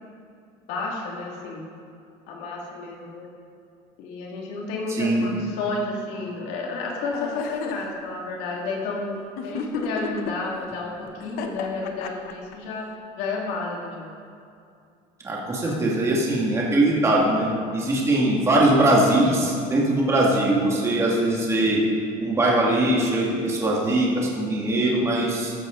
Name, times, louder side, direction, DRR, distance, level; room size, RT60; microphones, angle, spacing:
voice 1, 0.7-1.6 2.3-3.3 4.0-9.2 9.4-12.9 13.2-14.1 15.6-16.1 21.5-21.6, left 3 dB, 80° left, -2 dB, 2.3 m, -31 dB
sound 1, 7.1-7.8 9.4-10.3 11.2-12.5, left 6 dB, 60° left, 1.0 m, -32 dB
voice 2, 15.2-21.8 22.2-25.5, right 1 dB, 15° right, -4 dB, 2.1 m, -21 dB
14.5 x 12.0 x 3.9 m, 2.5 s
cardioid pair, 160°, 17 cm